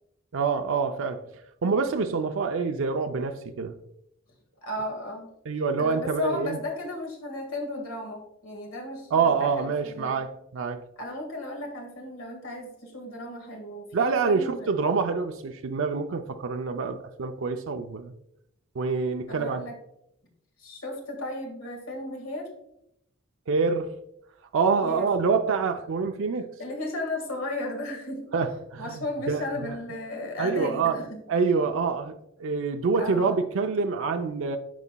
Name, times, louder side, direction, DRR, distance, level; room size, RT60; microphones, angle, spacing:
voice 1, 0.3-1.2 1.6-3.7 5.5-6.6 9.1-10.8 13.9-18.1 18.8-19.6 23.5-23.9 24.5-26.5 28.3-29.7 30.4-31.0 31.3-32.1 32.4-34.6, right 5 dB, 70° right, 0.4 m, -26 dB
voice 2, 4.6-5.3 5.8-10.2 11.0-14.7 19.3-19.8 20.6-22.5 24.8-25.1 26.6-28.3 28.8-31.2 33.0-33.3, left 1 dB, 80° left, 1.7 m, -35 dB
11.0 x 4.0 x 2.2 m
head